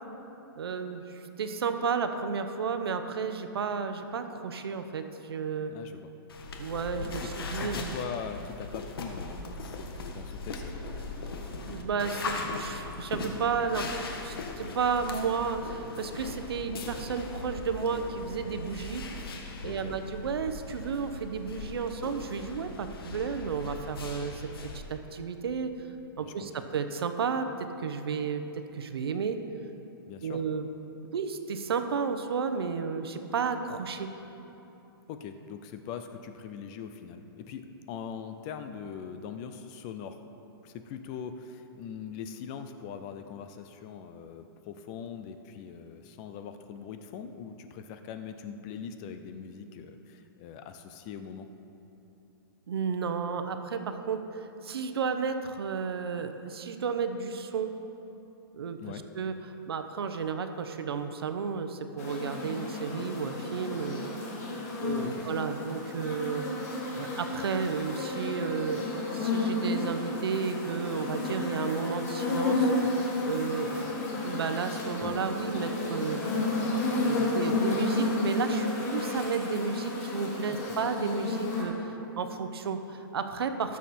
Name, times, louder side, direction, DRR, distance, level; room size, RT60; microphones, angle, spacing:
voice 1, 0.6-5.7 6.6-7.9 11.6-19.0 19.6-24.5 24.7-25.7 26.2-28.4 28.7-29.4 30.2-30.7 31.1-34.1 52.7-57.7 58.5-59.3 59.7-64.1 64.8-66.4 66.9-68.9 69.1-72.7 73.2-73.9 74.2-76.2 76.9-83.8, right 5 dB, 85° right, 8 dB, 0.9 m, -32 dB
voice 2, 5.7-6.1 7.2-10.6 19.6-20.0 26.2-26.6 30.1-30.4 35.1-37.6 37.9-40.2 40.6-51.5 58.8-59.0 65.0-65.3 75.0-75.1 80.5-80.6, left 7 dB, 15° left, 8 dB, 0.3 m, -41 dB
sound 1, 6.3-24.8, left 3 dB, 70° left, 1.6 m, -39 dB
sound 2, 62.0-81.6, left 2 dB, 40° left, 2.8 m, -31 dB
18.5 x 7.2 x 4.3 m, 3.0 s
hypercardioid pair, 175°, 13 cm